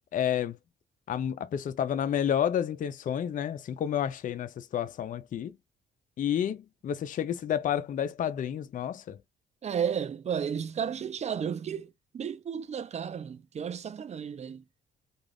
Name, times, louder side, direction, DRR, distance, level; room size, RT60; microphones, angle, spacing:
voice 1, 0.1-0.6 1.1-5.6 6.2-9.2, left 9 dB, 45° left, 0.4 m, -30 dB
voice 2, 9.6-11.9 12.1-14.6, right 7 dB, 35° right, 0.5 m, -33 dB
2.4 x 2.3 x 3.4 m
cardioid pair, 90°, 20 cm